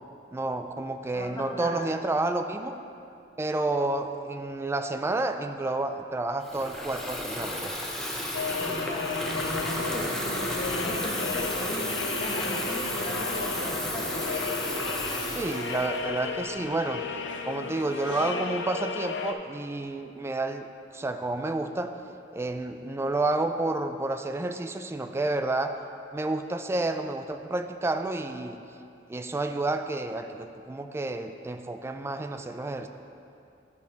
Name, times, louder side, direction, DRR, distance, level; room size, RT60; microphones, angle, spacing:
voice 1, 0.3-2.8 3.4-7.7 15.4-17.0 17.5-20.7 20.9-21.9 22.3-25.8 26.1-28.6 29.1-32.9, right 2 dB, 15° right, 8 dB, 0.3 m, -30 dB
voice 2, 1.1-1.8 8.4-11.9 12.1-14.2, equal, 25° left, -5 dB, 1.5 m, -37 dB
Water tap faucet / Fill (with liquid), 6.4-16.7, equal, 5° left, 0.7 m, -33 dB
sound 1, 8.3-19.3, left 5 dB, 90° left, 0.5 m, -34 dB
10.5 x 5.4 x 3.9 m, 2.6 s
head